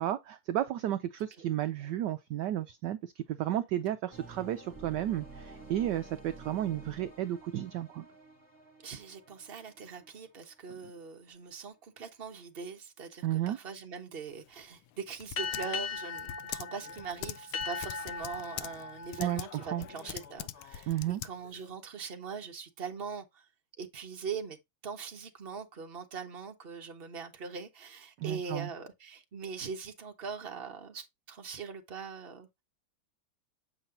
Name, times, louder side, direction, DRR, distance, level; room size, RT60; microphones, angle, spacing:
voice 1, 0.0-8.1 13.2-13.6 19.2-19.5 19.7-19.9 20.9-21.2 28.2-28.7, right 12 dB, 75° right, 1.0 m, -33 dB
sound 1, 4.1-11.0, right 3 dB, 10° right, 2.7 m, -51 dB
voice 2, 8.8-23.4 23.8-24.6 24.8-32.5, right 5 dB, 35° right, 1.1 m, -42 dB
Typing, 14.3-21.7, left 13 dB, 85° left, 1.4 m, -44 dB
sound 2, 15.4-20.4, left 5 dB, 60° left, 0.6 m, -39 dB
7.8 x 5.5 x 2.6 m
omnidirectional pair, 2.3 m